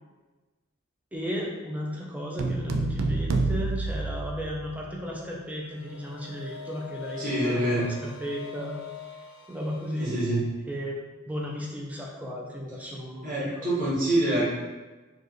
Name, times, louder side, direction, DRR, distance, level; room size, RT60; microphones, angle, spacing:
voice 1, 1.1-8.8 9.5-10.2 10.7-10.9 11.3-13.5, equal, 5° right, -2 dB, 0.5 m, -34 dB
sound 1, 2.4-4.9, right 3 dB, 65° right, 0.4 m, -28 dB
sound 2, 5.6-10.3, left 8 dB, 75° left, 0.5 m, -42 dB
voice 2, 7.2-7.9 10.0-10.4 13.2-14.4, right 1 dB, 40° right, -10 dB, 1.4 m, -26 dB
4.7 x 2.4 x 3.0 m, 1.2 s
head